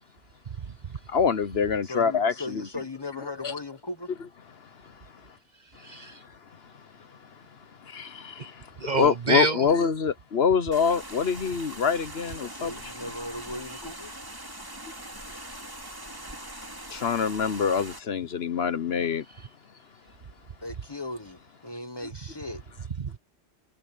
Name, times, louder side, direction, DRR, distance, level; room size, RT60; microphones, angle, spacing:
voice 1, 1.1-2.7 3.2-3.5 7.9-8.5 8.9-12.9 16.9-19.2, left 6 dB, 60° left, 1.1 m, -25 dB
voice 2, 1.8-4.1 12.4-14.1 20.6-21.4 21.6-22.6, left 2 dB, 20° left, 0.9 m, -37 dB
voice 3, 5.8-6.2 8.8-9.7 23.0-23.2, right 3 dB, 40° right, 1.0 m, -28 dB
sound 1, 10.7-18.0, right 1 dB, 15° right, 2.8 m, -42 dB
omnidirectional pair, 1.2 m